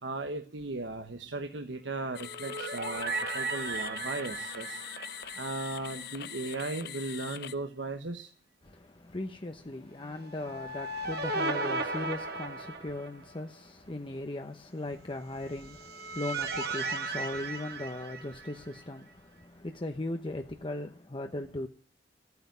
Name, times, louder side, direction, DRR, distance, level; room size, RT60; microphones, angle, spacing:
voice 1, 0.0-4.8 5.4-8.3, right 2 dB, 90° right, 1.2 m, -37 dB
sound 1, 1.0-6.4, equal, 75° left, 3.6 m, -60 dB
sound 2, 2.0-6.3 6.6-6.7 10.3-13.4 15.4-18.8, right 3 dB, 60° right, 2.2 m, -36 dB
sound 3, 2.1-7.5, left 11 dB, 60° left, 0.7 m, -43 dB
voice 2, 8.6-21.7, left 1 dB, 30° left, 0.9 m, -38 dB
14.5 x 9.4 x 9.3 m
head